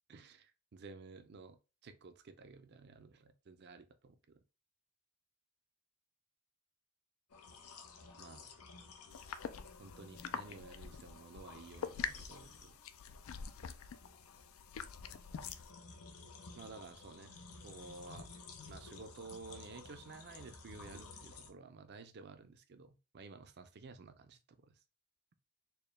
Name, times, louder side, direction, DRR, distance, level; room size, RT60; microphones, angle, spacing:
voice 1, 0.1-1.6 1.8-4.4 8.2-8.5 9.8-12.8 16.5-17.3 17.6-18.3 18.7-24.7, right 4 dB, 50° right, 0.4 m, -53 dB
sound 1, 7.3-21.5, left 4 dB, 85° left, 0.7 m, -54 dB
sound 2, 9.1-15.7, left 7 dB, 65° left, 0.3 m, -45 dB
4.3 x 2.2 x 3.2 m
head